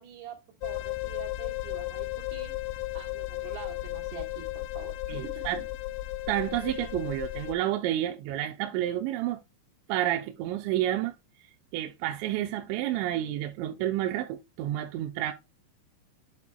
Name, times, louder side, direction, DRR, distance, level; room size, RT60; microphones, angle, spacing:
voice 1, 0.0-2.5 3.0-5.5, right 9 dB, 65° right, 3.5 m, -45 dB
sound 1, 0.6-7.5, left 17 dB, 85° left, 2.3 m, -35 dB
voice 2, 5.1-5.6 6.3-9.4 9.9-11.1 11.7-15.3, right 13 dB, 85° right, 2.8 m, -30 dB
10.0 x 4.4 x 2.2 m
omnidirectional pair, 5.2 m